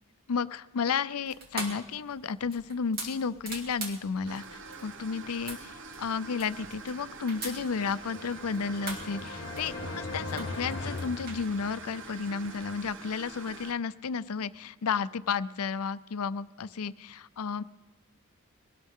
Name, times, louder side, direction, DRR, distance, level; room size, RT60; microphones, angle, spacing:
voice 1, 0.3-4.4 4.8-5.7 6.0-17.6, left 5 dB, 80° left, 16 dB, 0.5 m, -32 dB
sound 1, 1.2-11.4, right 2 dB, 45° right, 2.5 m, -44 dB
sound 2, 4.2-13.7, right 4 dB, 60° right, 1.1 m, -45 dB
sound 3, 7.7-12.1, left 3 dB, 55° left, 0.9 m, -39 dB
21.5 x 18.0 x 3.7 m, 1.1 s
head